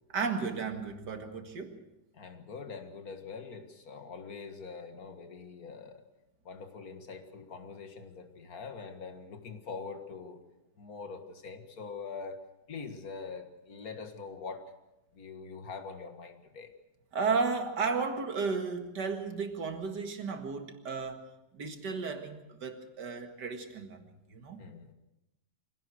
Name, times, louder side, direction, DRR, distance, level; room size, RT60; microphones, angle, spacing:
voice 1, 0.1-1.8 17.1-21.3 21.5-24.6, right 4 dB, 70° right, 6 dB, 2.5 m, -34 dB
voice 2, 2.1-6.0 6.5-10.4 10.8-12.4 12.7-14.7 15.1-16.7 24.6-24.9, left 5 dB, 55° left, 7 dB, 2.2 m, -43 dB
24.5 x 17.0 x 6.4 m, 0.93 s
omnidirectional pair, 1.9 m